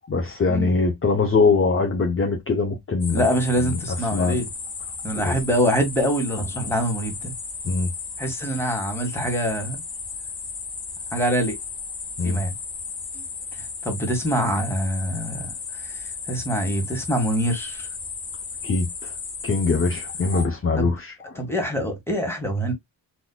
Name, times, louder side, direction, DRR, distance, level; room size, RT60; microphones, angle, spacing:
voice 1, 0.1-3.3 3.6-3.8 4.1-4.4 5.2-5.3 7.6-7.9 12.2-12.4 18.6-19.1 19.4-21.4, left 4 dB, 30° left, 0.7 m, -22 dB
sound 1, 3.0-20.5, left 5 dB, 55° left, 1.5 m, -34 dB
voice 2, 3.1-4.4 5.0-7.3 8.2-9.8 11.1-11.6 12.2-12.5 13.1-13.2 13.8-17.9 20.8-20.9 21.3-22.7, equal, 5° left, 1.6 m, -25 dB
4.2 x 2.8 x 2.2 m
wide cardioid pair, 110°, 46 cm